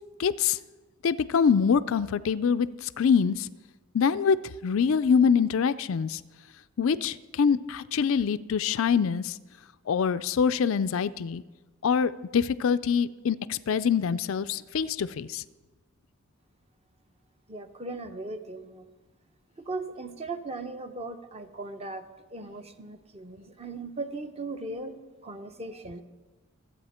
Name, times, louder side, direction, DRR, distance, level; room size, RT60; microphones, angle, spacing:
voice 1, 0.2-0.6 1.0-3.5 3.9-4.4 4.6-6.2 6.8-9.4 9.9-11.4 11.8-15.4, left 6 dB, 60° left, 14 dB, 0.4 m, -25 dB
voice 2, 17.5-18.9 19.6-26.0, right 2 dB, 25° right, 8 dB, 0.8 m, -38 dB
25.0 x 8.4 x 4.3 m, 1.2 s
head